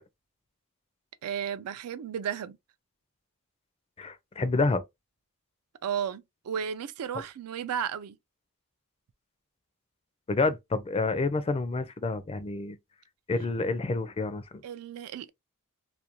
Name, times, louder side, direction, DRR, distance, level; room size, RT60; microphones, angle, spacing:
voice 1, 1.2-2.6 5.8-8.2 14.6-15.3, right 8 dB, 75° right, 0.4 m, -34 dB
voice 2, 4.0-4.8 10.3-12.8 13.3-14.6, left 3 dB, 25° left, 0.4 m, -28 dB
2.4 x 2.2 x 2.8 m
head